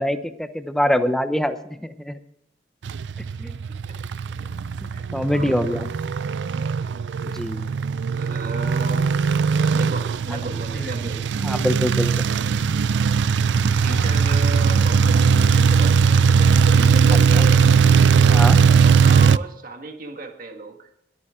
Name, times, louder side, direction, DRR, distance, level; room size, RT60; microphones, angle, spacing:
voice 1, 0.0-2.2 3.4-3.6 4.8-5.9 7.3-7.7 10.7-10.9 11.4-12.3 17.3-17.4 18.3-18.6, equal, 5° left, 9 dB, 0.9 m, -24 dB
sound 1, 2.9-19.4, right 6 dB, 85° right, 0.4 m, -19 dB
voice 2, 4.9-5.8 7.3-7.5 8.1-9.1 9.7-11.2 12.2-12.6 13.8-17.7 18.8-20.9, right 2 dB, 50° right, 3 dB, 1.8 m, -35 dB
21.5 x 8.9 x 3.8 m, 0.75 s
head